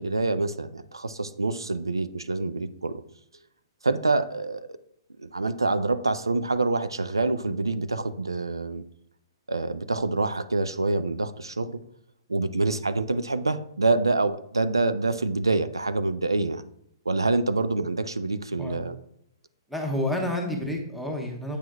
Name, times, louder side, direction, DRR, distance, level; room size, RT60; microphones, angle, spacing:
voice 1, 0.0-3.0 3.8-4.8 5.2-8.8 9.5-11.8 12.3-16.6 17.1-19.0, right 3 dB, 80° right, 12 dB, 0.4 m, -26 dB
voice 2, 19.7-21.6, left 1 dB, ahead, 0 dB, 1.1 m, -29 dB
8.2 x 6.0 x 2.3 m, 0.75 s
figure-of-eight pair, 115°, 2 cm